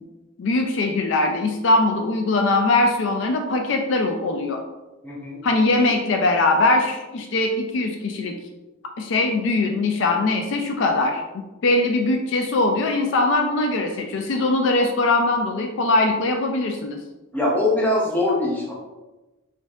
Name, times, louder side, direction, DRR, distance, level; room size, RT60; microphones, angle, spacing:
voice 1, 0.4-4.6 5.4-8.3 9.0-17.0, left 2 dB, 60° left, 3 dB, 0.3 m, -21 dB
voice 2, 5.0-5.4 17.3-18.7, left 1 dB, 10° left, -5 dB, 0.6 m, -22 dB
4.3 x 2.6 x 2.3 m, 1.1 s
head